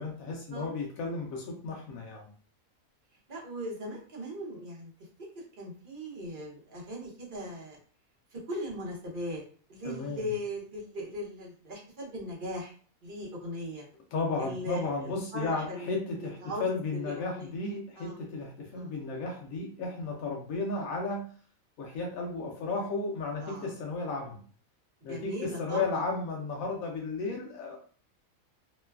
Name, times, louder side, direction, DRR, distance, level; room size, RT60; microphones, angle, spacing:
voice 1, 0.0-2.3 9.8-10.2 14.1-21.3 21.8-24.4 25.0-27.8, left 3 dB, 90° left, 0 dB, 1.1 m, -34 dB
voice 2, 3.3-4.9 5.3-7.8 8.3-9.4 9.7-12.7 13.0-13.8 14.4-16.6 17.0-17.5 18.0-18.2 18.7-18.9 23.4-23.7 25.1-25.8, equal, 45° right, -2 dB, 0.9 m, -39 dB
3.0 x 2.2 x 2.3 m, 0.43 s
omnidirectional pair, 1.4 m